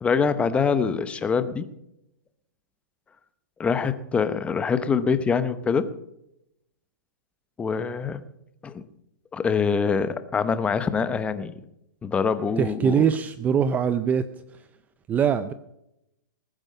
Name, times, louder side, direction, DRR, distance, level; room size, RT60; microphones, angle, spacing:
voice 1, 0.0-1.7 3.6-5.9 7.6-8.2 8.6-8.8 9.3-11.5 12.0-13.0, left 5 dB, 10° left, 13 dB, 0.8 m, -24 dB
voice 2, 12.6-14.3 15.1-15.5, right 7 dB, 15° right, 13 dB, 0.5 m, -22 dB
20.0 x 9.0 x 5.6 m, 0.82 s
hypercardioid pair, 150°, 11 cm